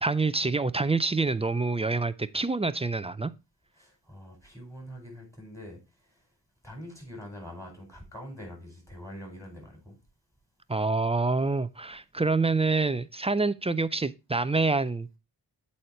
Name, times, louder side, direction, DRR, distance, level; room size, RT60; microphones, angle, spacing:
voice 1, 0.0-3.3 10.7-15.2, right 3 dB, 15° right, 0.3 m, -27 dB
voice 2, 3.7-6.3 6.6-10.0, equal, 5° left, 4.3 m, -44 dB
8.0 x 4.2 x 4.3 m
wide cardioid pair, 85°, 45 cm